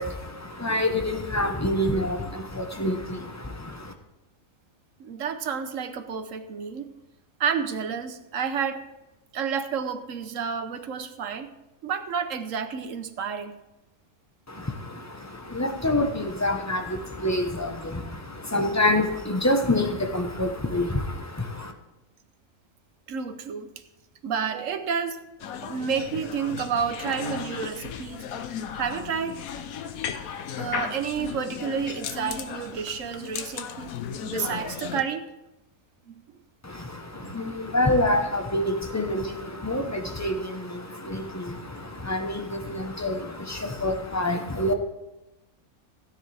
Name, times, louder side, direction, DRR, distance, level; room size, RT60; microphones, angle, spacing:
voice 1, 0.0-3.9 14.5-21.7 36.6-44.7, left 1 dB, 15° left, 4 dB, 0.8 m, -27 dB
voice 2, 5.0-6.9 7.4-8.8 9.3-11.5 11.8-13.6 23.1-23.7 24.2-25.2 25.6-28.2 28.7-29.4 30.5-33.9 34.3-35.2 36.1-36.2 37.2-37.4, right 7 dB, 65° right, 9 dB, 1.2 m, -30 dB
sound 1, 25.4-35.0, left 7 dB, 75° left, 1.2 m, -35 dB
16.5 x 9.7 x 3.4 m, 0.97 s
omnidirectional pair, 1.5 m